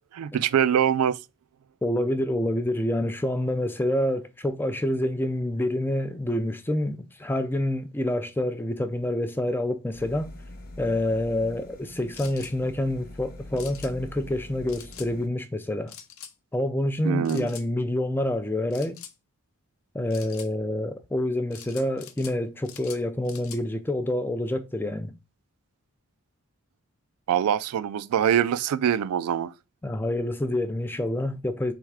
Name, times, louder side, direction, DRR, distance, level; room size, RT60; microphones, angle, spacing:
voice 1, 0.1-1.2 17.0-17.5 27.3-29.5, right 9 dB, 85° right, 0.3 m, -24 dB
voice 2, 1.8-10.3 10.8-15.9 16.5-19.0 19.9-25.1 29.8-31.7, left 1 dB, 10° left, 0.3 m, -27 dB
sound 1, 9.9-15.3, left 1 dB, 40° left, 0.9 m, -44 dB
sound 2, 12.1-12.5 13.6-13.9 14.7-15.1 15.9-16.3 17.2-17.7 18.7-19.1 20.1-20.5 21.5-22.4 22.6-23.6, left 9 dB, 70° left, 0.6 m, -44 dB
3.5 x 3.1 x 4.7 m
head